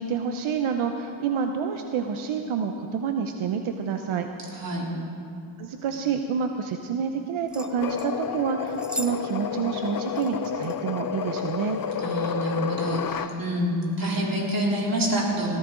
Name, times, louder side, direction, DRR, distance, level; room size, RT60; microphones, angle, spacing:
voice 1, 0.0-4.3 5.6-11.8, right 6 dB, 85° right, 5 dB, 0.8 m, -28 dB
voice 2, 4.5-4.9 12.0-15.6, right 1 dB, 45° right, -3 dB, 3.4 m, -27 dB
sound 1, 7.5-8.1 8.7-9.2 9.4-9.5 10.2-10.8 11.6-11.9 12.4-12.6, equal, ahead, 0.7 m, -38 dB
sound 2, 7.6-13.3, left 8 dB, 45° left, 0.7 m, -30 dB
18.0 x 14.0 x 3.8 m, 2.5 s
cardioid pair, 85°, 48 cm